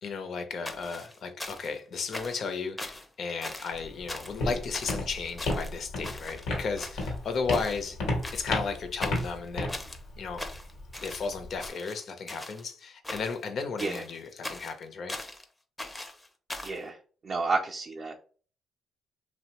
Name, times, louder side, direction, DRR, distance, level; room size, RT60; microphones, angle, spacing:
voice 1, 0.0-8.0 8.3-9.8 10.2-10.4 11.0-15.2, left 5 dB, 60° left, 7 dB, 0.6 m, -34 dB
sound 1, 0.7-1.8 2.1-2.5 2.8-3.1 3.4-3.8 4.1-4.4 4.7-5.0 5.4-6.5 6.8-7.2 7.5-7.8 8.2-8.6 9.0-10.0 10.4-11.3 11.6-12.6 13.0-13.5 13.8-15.4 15.8-16.8, left 1 dB, 15° left, 0.5 m, -40 dB
Walk footsteps, 3.7-11.7, left 2 dB, 85° left, 1.0 m, -34 dB
voice 2, 16.6-17.0 17.2-18.3, right 3 dB, 45° right, 0 dB, 0.4 m, -31 dB
2.8 x 2.1 x 2.8 m, 0.42 s
cardioid pair, 90°, 0 cm